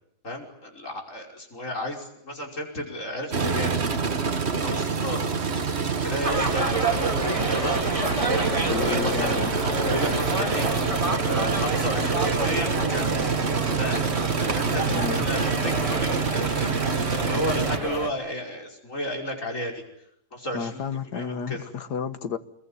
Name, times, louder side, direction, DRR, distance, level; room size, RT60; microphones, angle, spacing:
voice 1, 0.2-3.7 4.6-5.3 6.0-7.8 8.3-9.4 9.9-10.7 11.2-13.2 13.8-14.0 14.5-19.8 20.3-21.6, left 1 dB, 50° left, 5.8 m, -33 dB
sound 1, 3.3-17.8, right 5 dB, 40° right, 1.6 m, -26 dB
sound 2, 6.2-18.1, right 2 dB, 20° right, 2.4 m, -29 dB
voice 2, 8.7-9.6 14.9-15.3 20.5-22.4, left 6 dB, 80° left, 1.9 m, -31 dB
27.0 x 22.0 x 9.7 m
omnidirectional pair, 1.8 m